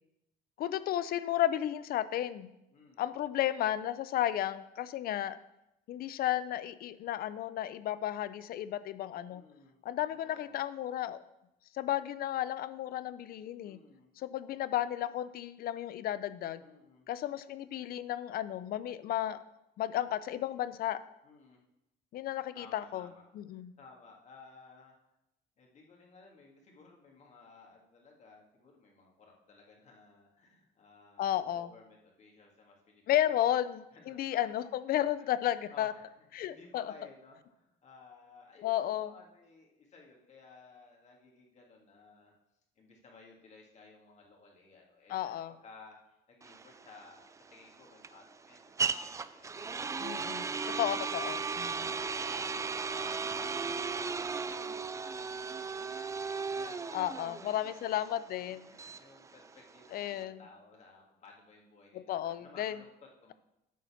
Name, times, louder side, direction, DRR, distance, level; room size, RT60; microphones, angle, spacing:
voice 1, 0.6-2.5 3.0-5.4 5.9-9.4 9.8-11.2 11.7-13.8 14.2-16.6 17.1-19.4 19.8-21.0 22.1-23.1 23.4-23.7 31.2-31.7 33.1-35.9 36.3-36.8 38.6-39.1 45.1-45.5 50.0-51.7 56.9-58.7 59.9-60.4 62.1-62.8, left 12 dB, 60° left, 15 dB, 0.5 m, -33 dB
voice 2, 2.7-3.1 9.3-9.8 10.2-10.6 13.6-14.1 16.6-17.1 21.2-21.6 22.5-24.9 25.6-33.4 33.9-34.5 35.2-35.3 35.7-42.3 42.8-50.1 51.6-57.7 58.7-63.3, left 4 dB, 45° left, -1 dB, 2.2 m, -57 dB
sound 1, 46.4-60.2, right 5 dB, 20° right, 0.3 m, -36 dB
9.3 x 4.2 x 7.1 m, 0.88 s
cardioid pair, 110°, 17 cm